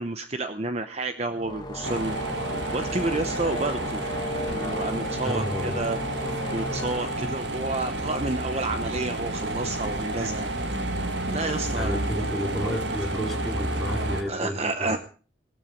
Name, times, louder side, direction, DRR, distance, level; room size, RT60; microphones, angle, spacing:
voice 1, 0.0-2.2 2.7-4.2 4.5-6.0 6.5-10.5 11.3-12.0 14.3-15.0, right 2 dB, 35° right, 9 dB, 0.9 m, -30 dB
sound 1, 1.3-8.7, left 1 dB, 20° left, 1.6 m, -35 dB
sound 2, 1.8-14.2, right 1 dB, 70° right, 2.0 m, -30 dB
voice 2, 5.2-5.8 9.8-9.9 11.7-15.0, equal, ahead, -2 dB, 4.3 m, -31 dB
18.5 x 13.0 x 5.2 m, 0.40 s
head